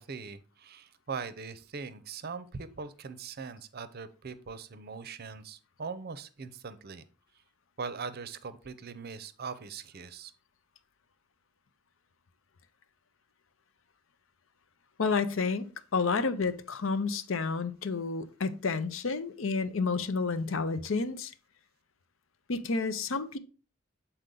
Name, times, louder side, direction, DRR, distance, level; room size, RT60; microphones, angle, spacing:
voice 1, 0.0-7.0 7.8-10.3, right 5 dB, 50° right, 0.6 m, -41 dB
voice 2, 15.0-21.3 22.5-23.4, left 4 dB, 75° left, 0.7 m, -30 dB
8.0 x 4.3 x 3.8 m
head